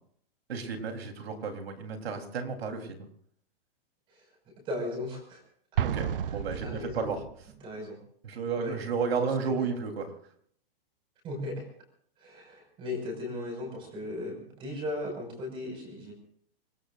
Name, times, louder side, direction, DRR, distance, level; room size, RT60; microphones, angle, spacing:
voice 1, 0.5-3.1 5.8-7.2 8.2-10.1, right 5 dB, 85° right, 4 dB, 3.7 m, -32 dB
voice 2, 4.1-5.4 6.3-7.1 7.6-8.0 8.6-8.8 9.2-9.8 11.2-11.6 12.2-16.1, left 2 dB, 15° right, 2 dB, 5.6 m, -37 dB
Explosion, 5.8-7.5, right 9 dB, 65° right, 0.8 m, -32 dB
26.5 x 19.5 x 2.5 m, 0.62 s
hypercardioid pair, 175°, 30 cm